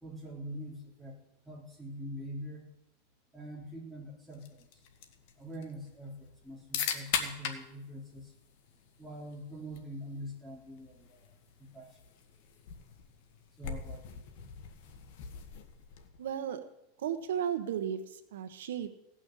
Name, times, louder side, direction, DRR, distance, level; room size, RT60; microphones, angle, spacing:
voice 1, 0.0-1.2 1.5-2.7 3.3-4.7 5.4-8.3 9.0-11.2 11.6-11.9 13.6-14.2, equal, ahead, -2 dB, 3.4 m, -44 dB
sound 1, 4.3-16.3, left 7 dB, 55° left, 1.7 m, -42 dB
voice 2, 16.2-16.6 17.0-18.9, right 9 dB, 85° right, 8 dB, 1.2 m, -34 dB
17.0 x 6.3 x 8.3 m, 0.86 s
supercardioid pair, 150°, 0 cm